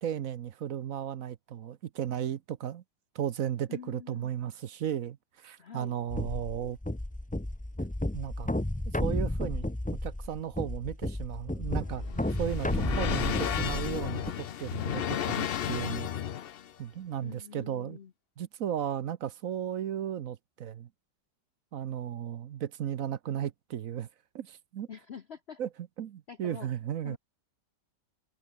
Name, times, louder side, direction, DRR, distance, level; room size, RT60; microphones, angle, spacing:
voice 1, 0.0-2.8 3.1-6.8 8.1-8.5 8.9-9.7 10.0-12.0 12.4-16.1 16.8-18.0 18.4-20.9 21.7-24.1 24.3-24.9 25.6-25.7 26.0-27.2, right 10 dB, 60° right, 1.1 m, -35 dB
voice 2, 3.7-4.3 5.6-6.0 17.2-18.1 24.9-25.6 26.3-26.7 27.0-27.2, left 7 dB, 45° left, 0.9 m, -46 dB
sound 1, 6.1-14.3, left 1 dB, 10° left, 0.5 m, -32 dB
sound 2, 11.6-16.7, left 9 dB, 90° left, 0.5 m, -33 dB
omnidirectional pair, 1.9 m